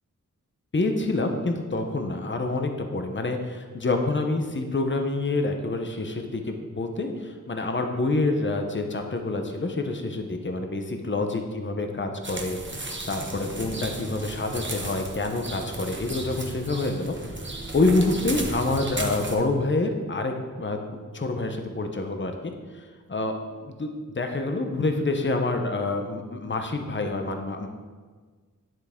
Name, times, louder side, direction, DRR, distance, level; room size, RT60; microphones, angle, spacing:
voice 1, 0.7-23.3 23.6-23.9 24.2-27.7, left 2 dB, 35° left, 5 dB, 0.8 m, -27 dB
sound 1, 12.2-19.4, right 2 dB, 35° right, 1.1 m, -34 dB
9.3 x 7.8 x 3.7 m, 1.5 s
wide cardioid pair, 75°, 32 cm